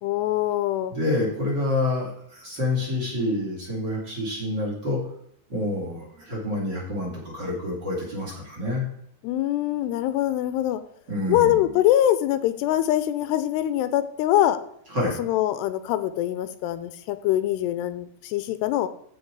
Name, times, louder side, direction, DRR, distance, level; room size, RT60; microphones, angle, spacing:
voice 1, 0.0-0.9 9.2-10.8 11.3-14.6 15.2-18.9, left 13 dB, 85° left, 12 dB, 2.7 m, -23 dB
voice 2, 0.9-5.0 5.5-8.8 11.1-11.7 14.9-15.2, left 1 dB, 30° right, -2 dB, 3.1 m, -27 dB
15.0 x 5.2 x 4.7 m, 0.69 s
omnidirectional pair, 4.8 m